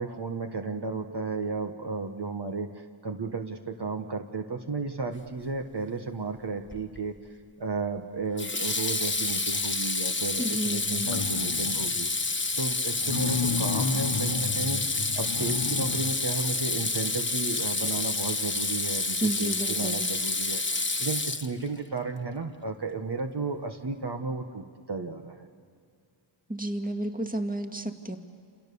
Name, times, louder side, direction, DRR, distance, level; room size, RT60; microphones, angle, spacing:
voice 1, 0.0-7.2 7.6-12.1 12.6-14.8 15.1-25.5, right 3 dB, 55° right, 5 dB, 1.4 m, -33 dB
Water tap faucet / Sink (filling or washing), 6.7-7.1 8.4-21.8, left 3 dB, 25° left, 1.1 m, -29 dB
voice 2, 10.4-11.1 19.2-20.1 26.5-28.2, right 1 dB, 15° right, 5 dB, 1.9 m, -31 dB
sound 1, 10.8-12.1 13.0-16.2 16.7-16.8, left 6 dB, 80° left, 1.2 m, -33 dB
29.0 x 28.5 x 7.0 m, 2.3 s
wide cardioid pair, 80°, 49 cm